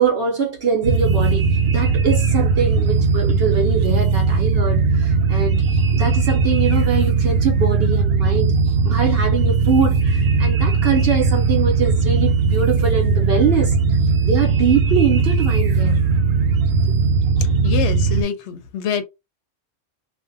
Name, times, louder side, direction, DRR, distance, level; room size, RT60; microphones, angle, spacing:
voice 1, 0.0-13.8 14.2-16.1 16.9-17.0, right 6 dB, 60° right, 0.8 m, -23 dB
sound 1, 0.8-18.2, right 4 dB, 85° right, 1.0 m, -18 dB
voice 2, 17.6-19.0, left 7 dB, 70° left, 0.8 m, -25 dB
2.5 x 2.1 x 2.5 m
omnidirectional pair, 1.3 m